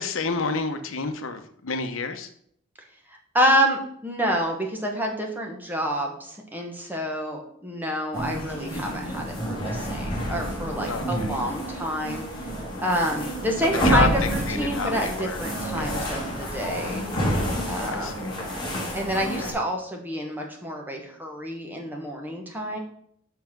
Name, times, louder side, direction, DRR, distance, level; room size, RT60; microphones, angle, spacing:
voice 1, 0.0-2.3 10.9-11.4 13.6-14.1 14.5-15.4 15.7-16.0 17.9-18.4 19.1-19.5, left 4 dB, 75° left, 7 dB, 0.8 m, -29 dB
voice 2, 3.1-12.2 12.8-17.0 17.7-18.4 18.9-22.8, equal, 10° right, 1 dB, 1.3 m, -28 dB
sound 1, 8.1-19.5, equal, 20° left, 2.4 m, -29 dB
5.7 x 5.7 x 5.9 m, 0.66 s
head